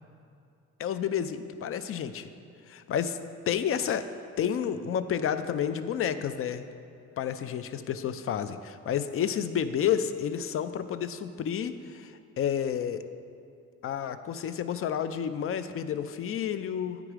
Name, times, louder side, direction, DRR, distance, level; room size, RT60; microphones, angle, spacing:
voice 1, 0.8-2.3 2.7-3.2 3.5-4.1 4.4-6.7 7.2-12.1 12.4-13.0 13.8-17.0, left 8 dB, 45° left, 11 dB, 0.4 m, -30 dB
8.9 x 4.8 x 4.8 m, 2.5 s
cardioid pair, 90°, 30 cm